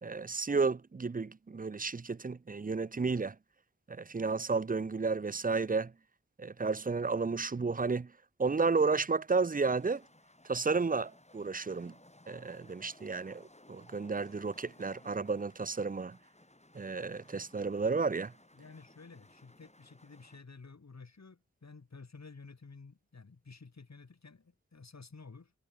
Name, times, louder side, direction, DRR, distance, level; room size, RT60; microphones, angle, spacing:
voice 1, 0.0-3.4 3.9-5.9 6.4-8.1 8.4-10.0 10.5-11.9 12.3-16.2 16.7-18.3, right 4 dB, 30° right, 0.5 m, -32 dB
sound 1, 9.3-20.4, left 1 dB, 25° left, 3.5 m, -60 dB
voice 2, 18.6-25.5, left 4 dB, 65° left, 2.0 m, -52 dB
wide cardioid pair, 40°, 29 cm